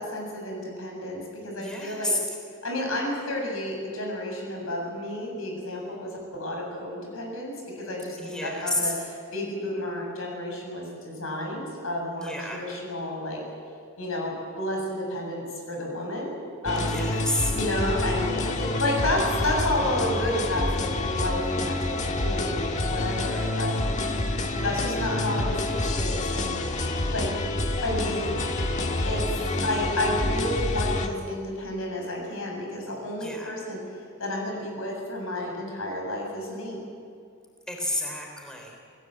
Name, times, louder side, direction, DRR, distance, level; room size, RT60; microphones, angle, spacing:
voice 1, 0.0-2.1 2.6-8.9 9.3-13.4 14.0-16.3 16.6-17.0 17.5-23.8 24.5-26.5 27.1-27.3 27.8-28.3 29.0-36.8, left 1 dB, 75° left, 0 dB, 7.4 m, -31 dB
voice 2, 1.6-2.2 8.2-8.9 12.2-12.6 16.8-17.5 33.2-33.5 37.7-38.8, left 1 dB, 5° left, 1 dB, 3.7 m, -30 dB
sound 1, 16.7-31.1, left 2 dB, 35° left, 1.6 m, -28 dB
28.5 x 18.0 x 7.8 m, 2.2 s
head